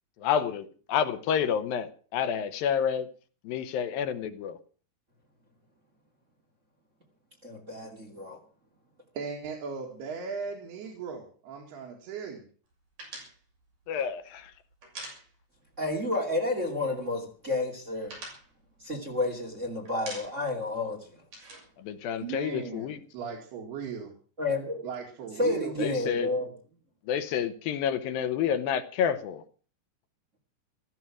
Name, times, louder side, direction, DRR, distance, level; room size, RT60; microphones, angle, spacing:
voice 1, 0.2-3.1 3.5-4.6 13.9-14.5 21.8-23.0 25.8-26.3 27.1-29.4, left 8 dB, 70° left, 10 dB, 2.6 m, -29 dB
voice 2, 7.4-8.4 15.8-18.2 18.8-21.2 24.4-24.8 25.4-26.5, left 2 dB, 20° right, 2 dB, 2.5 m, -30 dB
voice 3, 9.1-12.5 22.2-24.1 24.8-26.3, right 5 dB, 75° right, 1 dB, 4.2 m, -38 dB
sound 1, 13.0-15.8 16.0-16.2 16.5-17.2 17.5-19.5 19.9-20.6 20.9-22.7, right 2 dB, 50° right, 8.1 m, -45 dB
16.0 x 14.0 x 6.1 m, 0.42 s
omnidirectional pair, 4.6 m